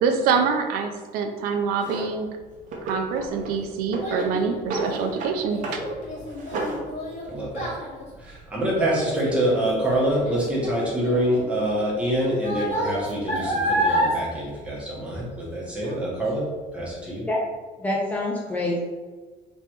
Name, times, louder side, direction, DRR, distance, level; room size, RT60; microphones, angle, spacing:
voice 1, 0.0-2.3 2.8-5.8, right 5 dB, 75° right, 5 dB, 0.5 m, -25 dB
Drawer open or close, 1.8-2.1 2.7-3.6 3.9-5.4 5.6-5.8 6.2-6.8, right 2 dB, 55° right, 0.9 m, -31 dB
Child speech kid speaking, 2.8-15.5 15.8-16.3 16.8-16.9, equal, 45° left, 1.3 m, -30 dB
voice 2, 7.3-7.7 8.2-16.4 16.7-17.2, right 1 dB, 5° right, -6 dB, 1.2 m, -25 dB
voice 3, 17.8-18.8, left 1 dB, 10° left, -4 dB, 0.4 m, -26 dB
3.3 x 3.0 x 4.4 m, 1.4 s
cardioid pair, 160°, 15 cm